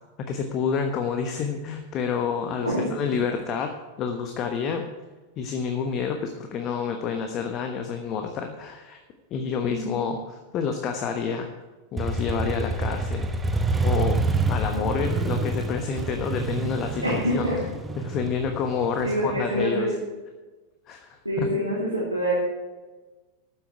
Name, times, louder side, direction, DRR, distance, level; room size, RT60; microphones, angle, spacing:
voice 1, 0.2-4.9 5.4-9.0 9.3-11.5 11.9-13.3 13.8-14.2 14.5-19.9 20.9-21.5, left 6 dB, 35° left, 5 dB, 1.2 m, -29 dB
voice 2, 2.6-3.1 9.7-10.0 17.0-17.6 19.0-20.0 21.2-22.3, equal, 90° right, -7 dB, 2.8 m, -26 dB
Motorcycle, 12.0-19.6, right 2 dB, 10° right, 1.1 m, -27 dB
13.0 x 9.3 x 4.6 m, 1.3 s
figure-of-eight pair, 90°, 0 cm